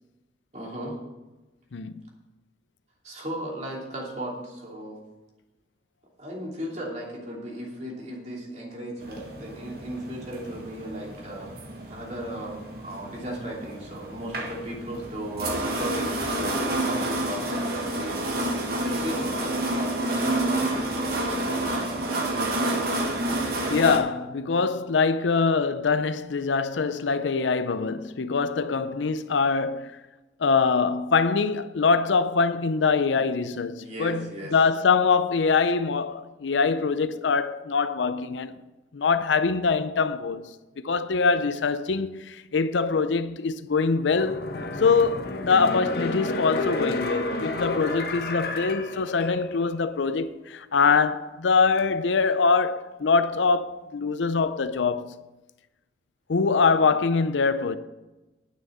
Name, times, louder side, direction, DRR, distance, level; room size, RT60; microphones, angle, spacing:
voice 1, 0.5-1.0 3.0-5.0 6.2-11.5 11.9-22.7 33.2-33.3 33.8-34.5 56.7-56.9, right 1 dB, 40° right, 3.0 m, -36 dB
voice 2, 1.7-2.0 23.7-29.9 30.4-38.6 38.9-40.5 40.8-44.5 44.8-55.2 56.3-57.8, left 4 dB, 85° left, 0.5 m, -23 dB
sound 1, 9.0-24.0, right 1 dB, 55° right, 1.5 m, -29 dB
sound 2, 44.1-49.7 50.1-50.2, left 2 dB, 55° left, 1.0 m, -31 dB
9.5 x 6.4 x 7.9 m
head